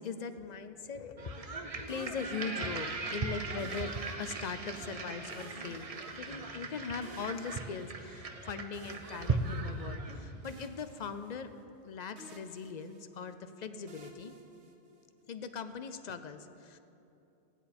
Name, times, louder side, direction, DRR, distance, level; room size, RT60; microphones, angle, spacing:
voice 1, 0.0-5.9 6.2-11.5 11.8-14.4 15.3-16.8, left 5 dB, 50° left, 10 dB, 0.6 m, -40 dB
sound 1, 1.2-10.5, right 3 dB, 40° right, 0.7 m, -38 dB
sound 2, 1.9-3.0 3.6-4.7 5.3-6.7 7.0-8.2 8.7-10.1 10.4-11.8 12.2-13.4 13.9-15.2, right 4 dB, 85° right, 1.3 m, -55 dB
16.0 x 9.9 x 4.3 m, 2.8 s
omnidirectional pair, 1.1 m